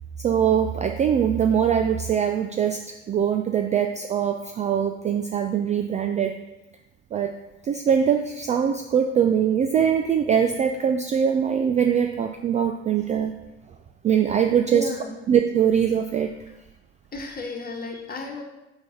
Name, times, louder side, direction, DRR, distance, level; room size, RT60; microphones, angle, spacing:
voice 1, 0.2-6.3 7.1-7.3 7.6-13.4 14.0-14.9 15.3-16.4, right 8 dB, 20° right, 6 dB, 0.3 m, -22 dB
voice 2, 14.7-15.2 17.1-18.4, left 2 dB, 25° left, 1 dB, 1.4 m, -33 dB
4.7 x 4.6 x 5.7 m, 0.98 s
hypercardioid pair, 65°, 35 cm